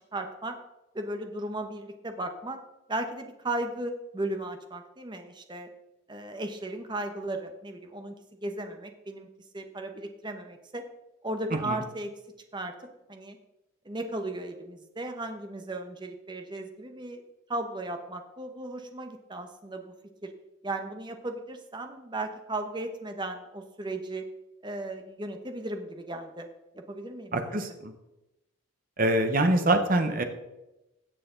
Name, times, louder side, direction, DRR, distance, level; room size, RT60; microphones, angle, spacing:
voice 1, 0.1-0.6 0.9-2.6 2.9-5.7 6.1-8.1 8.4-9.3 9.5-10.8 11.2-12.1 12.5-12.7 13.1-13.4 13.8-17.2 17.5-19.9 20.2-20.3 20.6-24.2 24.6-26.5 26.7-27.6, right 2 dB, 20° right, 5 dB, 1.0 m, -36 dB
voice 2, 27.3-27.9 29.0-30.2, right 1 dB, 40° right, 6 dB, 1.1 m, -24 dB
16.5 x 6.8 x 3.9 m, 0.96 s
head